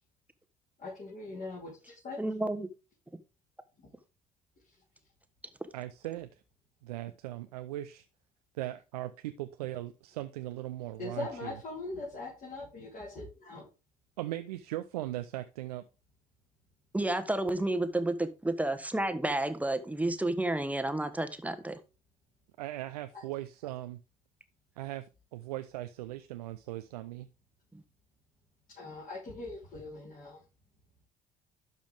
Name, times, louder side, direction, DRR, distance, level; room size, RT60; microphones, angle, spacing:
voice 1, 0.8-2.2 11.0-13.7 23.1-23.2 28.7-30.4, left 3 dB, 45° left, 5.0 m, -41 dB
voice 2, 2.2-2.7 16.9-21.8 27.7-27.8, right 1 dB, 5° right, 1.3 m, -31 dB
voice 3, 5.7-6.4 6.8-8.0 8.6-11.6 14.2-15.9 22.6-24.0 24.8-25.1 25.3-27.3, right 15 dB, 80° right, 0.5 m, -39 dB
12.0 x 5.4 x 3.6 m
hypercardioid pair, 55°, 19 cm